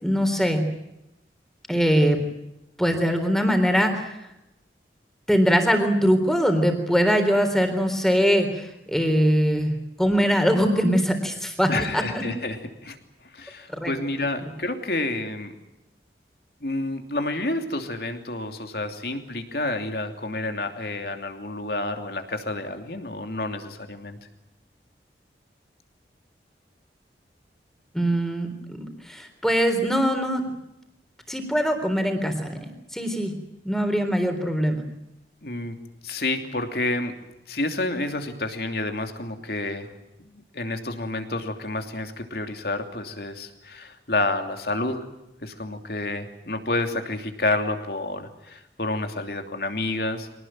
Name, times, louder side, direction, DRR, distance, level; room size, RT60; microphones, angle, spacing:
voice 1, 0.0-0.6 1.7-2.2 2.8-4.2 5.3-9.7 10.0-12.2 13.7-13.9 27.9-30.4 31.3-33.3 33.6-34.8, equal, 5° left, 6 dB, 3.7 m, -22 dB
voice 2, 11.7-12.6 12.8-13.0 13.3-15.5 16.6-24.2 35.4-35.8 36.0-37.1 37.5-39.9 40.2-40.3 40.5-45.0 45.4-50.4, left 2 dB, 65° left, 6 dB, 3.0 m, -29 dB
24.5 x 19.0 x 9.0 m, 0.89 s
head